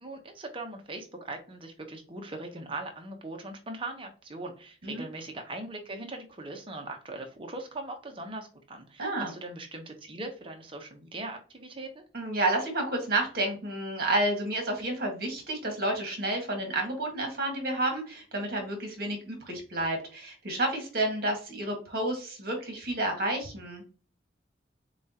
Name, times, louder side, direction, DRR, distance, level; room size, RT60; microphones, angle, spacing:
voice 1, 0.0-12.0, right 2 dB, 25° right, 4 dB, 0.8 m, -40 dB
voice 2, 9.0-9.3 12.1-23.8, right 1 dB, 50° right, 2 dB, 1.6 m, -30 dB
6.9 x 2.4 x 2.8 m, 0.37 s
head